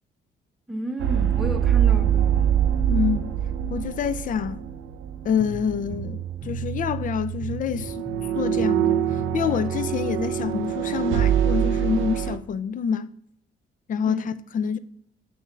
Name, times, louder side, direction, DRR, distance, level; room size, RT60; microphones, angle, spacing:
voice 1, 0.7-2.5 14.0-14.3, right 1 dB, ahead, 0.8 m, -32 dB
sound 1, 1.0-5.9 6.1-6.4 7.8-12.4, right 10 dB, 85° right, 0.5 m, -24 dB
voice 2, 2.9-3.4 3.7-4.6 5.2-8.1 8.3-13.1 13.9-14.8, left 7 dB, 40° left, 0.4 m, -27 dB
sound 2, 5.4-10.7, right 7 dB, 25° right, 1.1 m, -33 dB
6.8 x 2.6 x 5.4 m
cardioid pair, 90°, 20 cm